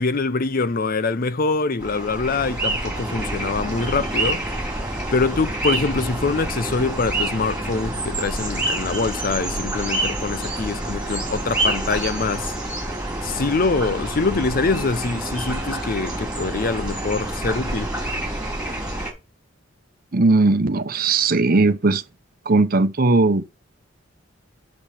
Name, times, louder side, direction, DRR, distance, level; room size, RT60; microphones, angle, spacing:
voice 1, 0.0-4.8 5.1-12.6 13.2-17.9, left 4 dB, 45° left, 0.6 m, -24 dB
sound 1, 1.8-19.1, right 1 dB, 5° right, 3.9 m, -27 dB
voice 2, 20.1-22.0 22.4-23.5, right 3 dB, 50° right, 0.9 m, -18 dB
8.5 x 6.1 x 7.3 m
head